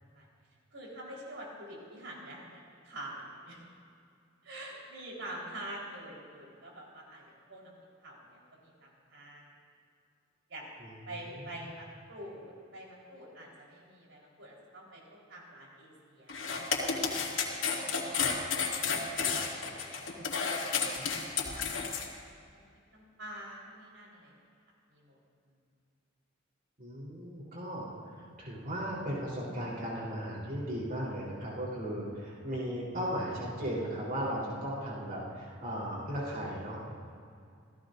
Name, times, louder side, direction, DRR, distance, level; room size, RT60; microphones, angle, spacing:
voice 1, 0.7-3.6 4.4-7.2 7.5-7.7 8.0-9.5 10.5-10.7 11.1-17.4 18.0-18.5 18.9-19.0 19.3-21.0 21.3-22.1 22.5-22.7 22.9-24.3 24.9-25.2, right 1 dB, 75° right, -3 dB, 4.4 m, -47 dB
voice 2, 10.8-11.7 26.8-36.8, equal, 50° right, -6 dB, 4.0 m, -36 dB
sound 1, 16.3-22.1, left 6 dB, 75° left, 2.6 m, -31 dB
28.5 x 17.0 x 2.7 m, 2.4 s
head